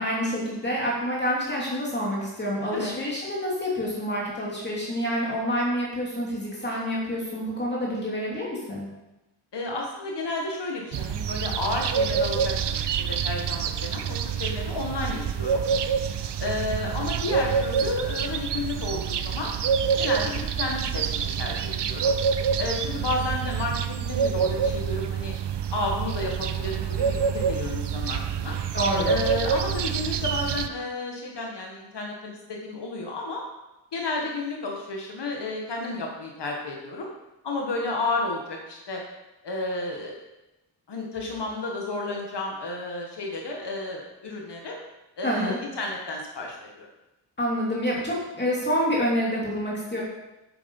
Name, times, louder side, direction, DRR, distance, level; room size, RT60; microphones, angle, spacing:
voice 1, 0.0-8.9 28.7-29.1 45.2-45.6 47.4-50.0, equal, 25° left, -5 dB, 2.7 m, -27 dB
voice 2, 9.5-15.6 16.4-19.5 20.0-22.1 22.6-25.3 25.7-28.6 29.0-33.4 33.9-37.1 37.4-39.0 39.4-40.2 40.9-44.8 45.2-46.9, left 2 dB, 65° left, 0 dB, 1.8 m, -32 dB
sound 1, 10.9-30.7, right 7 dB, 65° right, 0.7 m, -27 dB
9.6 x 8.7 x 5.4 m, 0.98 s
wide cardioid pair, 175°, 44 cm